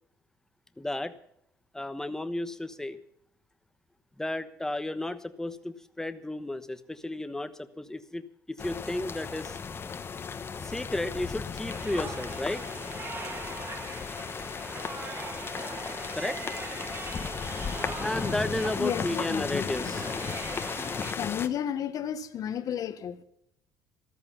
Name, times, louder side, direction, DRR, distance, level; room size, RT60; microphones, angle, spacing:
voice 1, 0.8-1.1 1.7-3.0 4.2-7.5 7.8-9.6 10.6-12.6 16.1-16.4 18.0-20.1, left 1 dB, 5° left, 10 dB, 1.1 m, -33 dB
sound 1, 8.6-21.5, left 6 dB, 30° left, 1.2 m, -35 dB
sound 2, 11.7-21.1, right 3 dB, 30° right, 1.8 m, -41 dB
voice 2, 18.8-19.9 21.2-23.2, left 9 dB, 55° left, 11 dB, 1.3 m, -33 dB
14.0 x 13.5 x 5.7 m, 0.73 s
cardioid pair, 110°, 7 cm